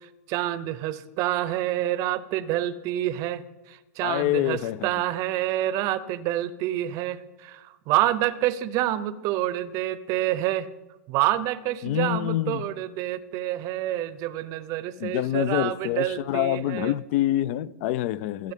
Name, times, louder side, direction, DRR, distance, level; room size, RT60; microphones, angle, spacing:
voice 1, 0.3-3.4 3.7-10.7 11.1-16.9, right 14 dB, 40° right, 0.6 m, -27 dB
voice 2, 4.0-4.9 11.8-12.6 15.0-18.5, left 13 dB, 50° left, 0.4 m, -26 dB
22.0 x 8.1 x 3.7 m
hypercardioid pair, 135°, 9 cm